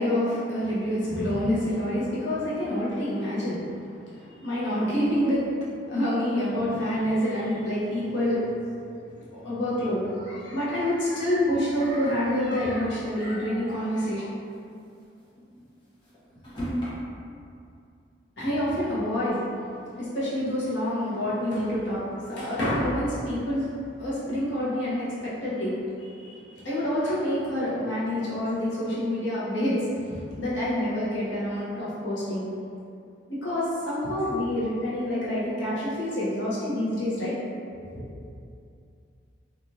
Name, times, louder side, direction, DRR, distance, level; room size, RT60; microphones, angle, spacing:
voice 1, 0.0-5.5 5.9-8.5 9.2-14.2 18.4-23.7 24.0-32.4 33.3-37.4 37.9-38.0, left 1 dB, 85° left, -9 dB, 1.0 m, -27 dB
sound 1, 11.8-12.9 13.3-13.4 13.6-13.7 14.3-16.9, equal, 25° left, 0.8 m, -37 dB
3.1 x 2.5 x 2.6 m, 2.5 s
head